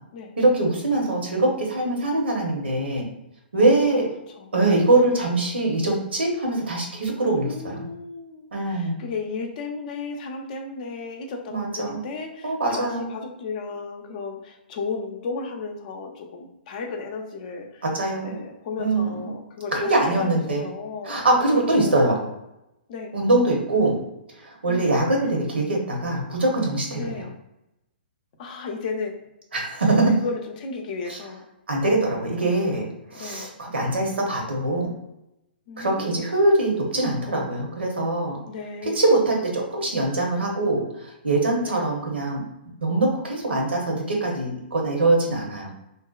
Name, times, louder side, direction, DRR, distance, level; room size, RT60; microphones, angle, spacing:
voice 1, 0.4-3.1 3.5-4.1 4.5-7.9 8.5-9.0 11.5-12.0 12.4-13.1 17.8-18.3 18.8-19.2 19.8-20.7 21.0-22.2 23.1-24.0 24.4-27.3 29.5-30.2 31.1-31.2 31.7-34.9 35.8-38.4 38.8-40.9 41.2-42.4 42.8-45.7, right 2 dB, 85° right, 0 dB, 0.8 m, -23 dB
voice 2, 7.2-17.8 18.2-21.2 21.5-22.3 22.9-23.1 24.7-24.9 26.9-27.3 28.4-29.1 30.1-31.4 32.4-32.7 33.1-33.5 35.7-36.2 38.5-39.0 41.6-41.8, left 4 dB, 50° left, 2 dB, 0.5 m, -34 dB
2.7 x 2.1 x 2.3 m, 0.88 s
hypercardioid pair, 125°, 6 cm